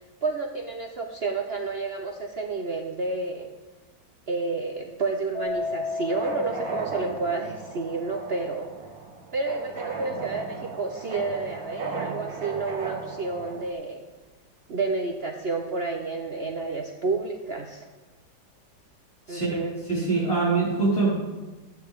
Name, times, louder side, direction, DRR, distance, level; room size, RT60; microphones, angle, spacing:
voice 1, 0.2-3.5 4.3-8.7 9.3-14.1 14.7-17.9 19.3-19.7, right 3 dB, 60° right, 3 dB, 0.6 m, -30 dB
Keyboard (musical), 5.3-7.8, left 3 dB, 60° left, 2.4 m, -34 dB
sound 1, 5.5-13.7, right 4 dB, 85° right, 2.1 m, -37 dB
voice 2, 19.9-21.3, right 3 dB, 20° left, -8 dB, 4.5 m, -24 dB
14.0 x 8.9 x 3.6 m, 1.2 s
omnidirectional pair, 1.9 m